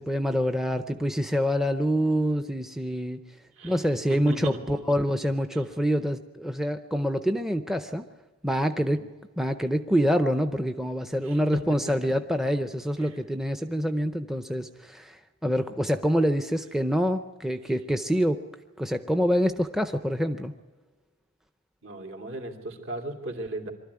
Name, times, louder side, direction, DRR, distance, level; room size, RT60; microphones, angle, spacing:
voice 1, 0.0-3.2 3.6-8.1 8.4-9.0 9.4-18.4 18.8-20.5, equal, ahead, 7 dB, 0.6 m, -26 dB
voice 2, 4.1-4.6 5.5-5.7 8.9-9.0 11.2-11.4 13.0-13.2 21.8-23.7, right 2 dB, 70° right, 2 dB, 3.0 m, -37 dB
24.0 x 13.0 x 9.6 m, 1.3 s
head